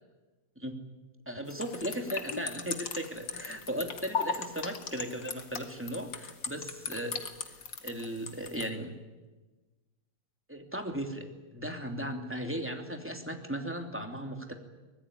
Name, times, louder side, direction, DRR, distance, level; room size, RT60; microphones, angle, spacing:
voice 1, 1.3-7.6 7.8-9.0 10.5-14.5, equal, 5° right, 4 dB, 2.8 m, -37 dB
sound 1, 1.5-8.7, left 6 dB, 80° left, 2.6 m, -37 dB
24.5 x 20.0 x 9.9 m, 1.2 s
omnidirectional pair, 2.0 m